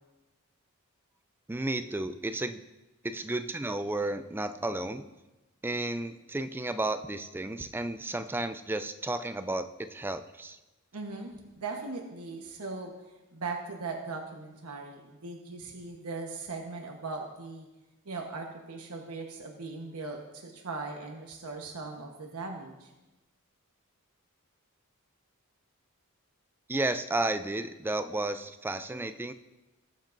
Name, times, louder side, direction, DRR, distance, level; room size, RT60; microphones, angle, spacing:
voice 1, 1.5-2.6 3.0-5.1 5.6-10.6 26.7-29.3, right 2 dB, 10° right, 10 dB, 0.3 m, -32 dB
voice 2, 10.9-12.9 13.3-17.7 18.0-22.9, right 3 dB, 85° right, 1 dB, 1.2 m, -39 dB
19.5 x 7.4 x 2.6 m, 1.1 s
head